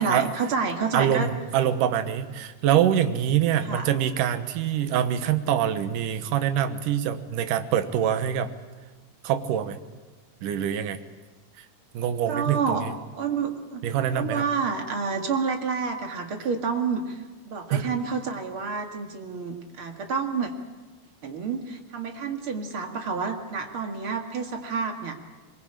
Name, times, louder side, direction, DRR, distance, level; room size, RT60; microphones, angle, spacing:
voice 1, 0.0-1.3 3.6-3.9 12.3-12.8 13.1-13.8 14.1-17.2 17.5-20.5 21.2-25.1, right 5 dB, 45° right, 4 dB, 2.4 m, -29 dB
voice 2, 0.9-8.5 9.2-9.8 10.4-11.0 11.9-12.9 13.8-14.4 17.7-17.9, right 10 dB, 75° right, 9 dB, 2.7 m, -25 dB
23.0 x 21.5 x 8.9 m, 1.3 s
omnidirectional pair, 3.9 m